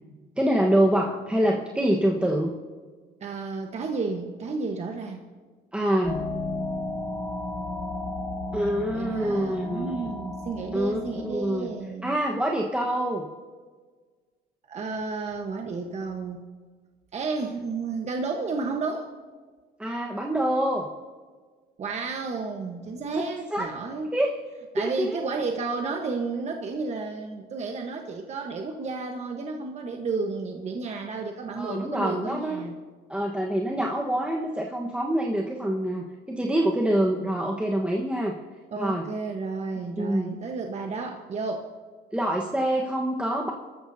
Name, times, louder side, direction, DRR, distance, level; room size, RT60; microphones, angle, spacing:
voice 1, 0.4-2.5 5.7-6.2 8.5-9.9 10.7-11.7 12.0-13.2 19.8-20.9 23.2-23.3 23.5-23.6 24.1-24.3 24.8-25.2 31.6-32.6 33.1-38.3 38.8-39.0 40.0-40.4 42.1-43.5, right 1 dB, 5° right, -1 dB, 1.3 m, -25 dB
voice 2, 3.2-5.2 8.9-12.1 14.7-16.4 17.1-19.1 21.8-24.1 24.7-32.7 38.7-41.7, right 4 dB, 40° right, 3 dB, 1.2 m, -32 dB
sound 1, 6.0-11.9, left 2 dB, 20° left, 1.4 m, -34 dB
26.0 x 13.5 x 2.8 m, 1.5 s
cardioid pair, 110°, 17 cm